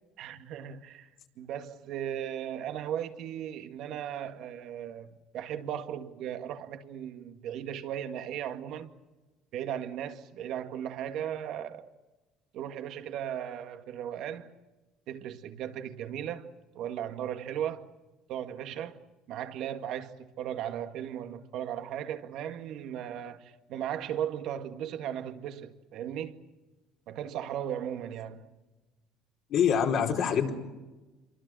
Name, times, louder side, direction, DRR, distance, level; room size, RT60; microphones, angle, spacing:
voice 1, 0.2-1.1 1.4-8.9 9.5-11.9 12.5-14.5 15.1-17.9 18.3-19.0 19.3-26.4 27.1-28.5, right 10 dB, 65° right, 2.0 m, -37 dB
voice 2, 29.5-30.5, left 7 dB, 60° left, 4.8 m, -25 dB
27.5 x 24.5 x 6.3 m
supercardioid pair, 95°, 0 cm